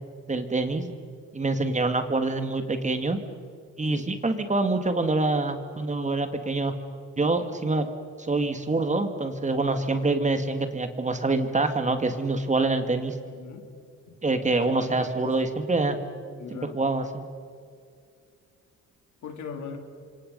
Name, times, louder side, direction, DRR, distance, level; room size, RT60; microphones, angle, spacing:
voice 1, 0.3-0.9 1.3-3.2 3.8-6.7 7.2-7.9 8.2-13.2 14.2-16.0 16.5-17.3, right 3 dB, 25° right, 7 dB, 2.2 m, -26 dB
voice 2, 13.2-13.7 14.1-14.2 14.7-15.4 16.4-16.8 19.2-19.8, left 6 dB, 70° left, 4 dB, 3.4 m, -40 dB
29.5 x 25.5 x 5.5 m, 2.2 s
cardioid pair, 90°, 30 cm